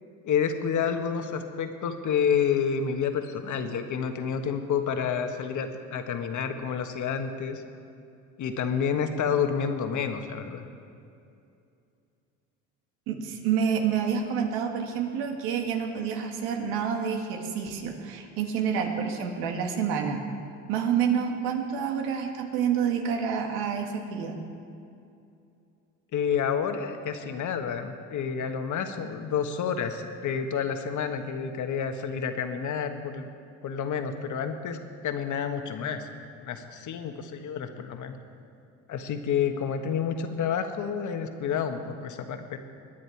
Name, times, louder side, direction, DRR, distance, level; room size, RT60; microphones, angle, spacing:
voice 1, 0.2-7.6 8.4-10.6 26.1-33.3 33.6-34.8 35.0-36.1 36.4-38.2 38.9-42.6, left 7 dB, 55° left, 6 dB, 1.4 m, -29 dB
voice 2, 13.1-20.2 20.7-24.4, right 7 dB, 80° right, 3 dB, 1.9 m, -28 dB
21.5 x 9.3 x 4.6 m, 2.5 s
supercardioid pair, 85°, 37 cm